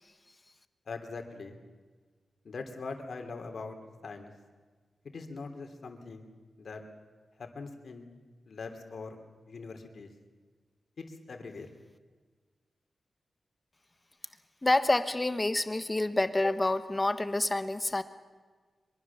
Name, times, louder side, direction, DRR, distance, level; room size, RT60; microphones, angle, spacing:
voice 1, 0.9-1.5 2.4-3.8 4.0-4.3 5.0-6.3 6.6-6.8 7.4-8.1 8.4-9.2 9.5-10.1 11.0-11.7, left 4 dB, 55° left, 5 dB, 3.2 m, -42 dB
voice 2, 14.6-18.0, left 2 dB, 20° left, 11 dB, 1.2 m, -28 dB
24.0 x 23.0 x 7.3 m, 1.5 s
wide cardioid pair, 145°, 0 cm